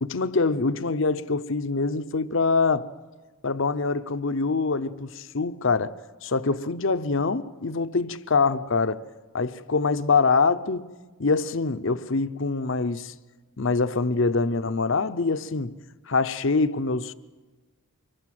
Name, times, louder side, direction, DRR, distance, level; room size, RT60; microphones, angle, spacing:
voice 1, 0.0-2.9 3.4-5.9 6.2-9.0 9.3-10.9 11.2-13.1 13.6-15.7 16.1-17.1, left 4 dB, 60° left, 0.8 m, -24 dB
24.5 x 21.5 x 7.7 m
head